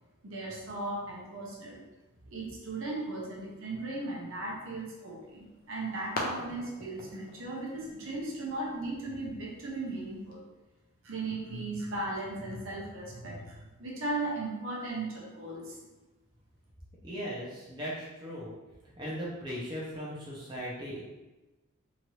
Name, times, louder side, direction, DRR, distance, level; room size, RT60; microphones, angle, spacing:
voice 1, 0.2-1.8 2.2-10.4 11.0-15.8, right 2 dB, 60° right, -4 dB, 0.8 m, -37 dB
sound 1, 5.2-10.3, left 1 dB, 40° left, 0.5 m, -43 dB
voice 2, 17.0-18.5 19.0-21.0, equal, 20° right, -7 dB, 0.6 m, -38 dB
2.9 x 2.5 x 3.0 m, 1.1 s
head